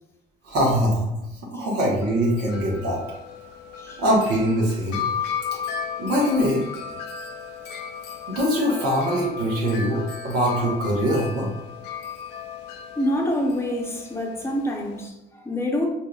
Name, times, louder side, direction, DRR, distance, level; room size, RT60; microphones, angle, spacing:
voice 1, 0.4-1.1 1.5-3.0 4.0-5.0 6.0-6.6 8.3-11.5, equal, 85° right, -4 dB, 1.1 m, -22 dB
Wind chime, 1.7-15.1, left 7 dB, 90° left, 0.4 m, -35 dB
voice 2, 13.0-15.9, equal, 15° left, 1 dB, 0.7 m, -26 dB
4.6 x 2.7 x 2.3 m, 0.89 s
cardioid pair, 110°, 17 cm